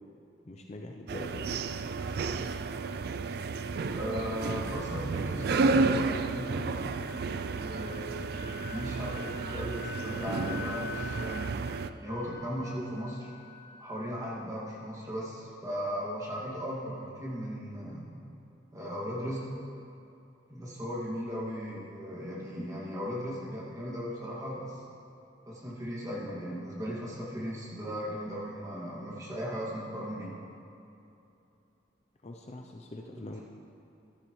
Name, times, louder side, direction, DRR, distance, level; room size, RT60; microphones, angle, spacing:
voice 1, 0.5-1.6 32.2-33.4, left 2 dB, 35° left, 2 dB, 0.5 m, -43 dB
sound 1, 1.1-11.9, right 4 dB, 55° right, 0.3 m, -32 dB
voice 2, 3.9-6.7 7.5-11.6 12.0-13.3 13.8-18.1 18.7-19.4 20.5-24.8 25.5-30.3, equal, 15° right, -6 dB, 2.1 m, -37 dB
Wind instrument woodwind instrument, 6.7-14.4, left 8 dB, 60° left, 2.5 m, -47 dB
14.5 x 11.0 x 3.2 m, 2.8 s
head